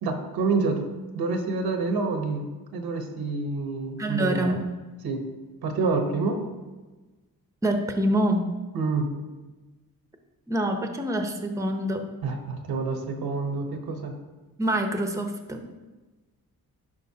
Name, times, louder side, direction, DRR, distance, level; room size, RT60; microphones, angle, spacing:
voice 1, 0.0-0.9 1.1-4.6 5.0-5.2 5.6-6.4 8.7-9.1 12.2-14.1, right 3 dB, 90° right, 5 dB, 1.0 m, -27 dB
voice 2, 4.0-4.7 7.6-8.5 10.5-12.1 14.6-15.7, right 1 dB, 10° right, 5 dB, 0.7 m, -26 dB
10.5 x 5.0 x 2.8 m, 1.2 s
cardioid pair, 100°, 36 cm